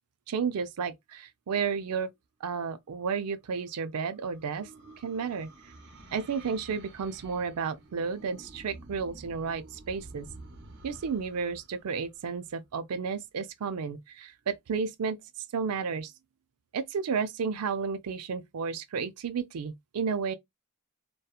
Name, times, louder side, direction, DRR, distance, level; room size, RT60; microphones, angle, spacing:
voice 1, 0.3-2.1 2.4-4.7 5.0-5.5 6.1-10.3 10.8-15.2 15.5-16.1 16.7-20.3, right 5 dB, 90° right, 0.4 m, -32 dB
sound 1, 3.2-12.8, right 2 dB, 50° right, 0.7 m, -51 dB
2.8 x 2.2 x 2.2 m
head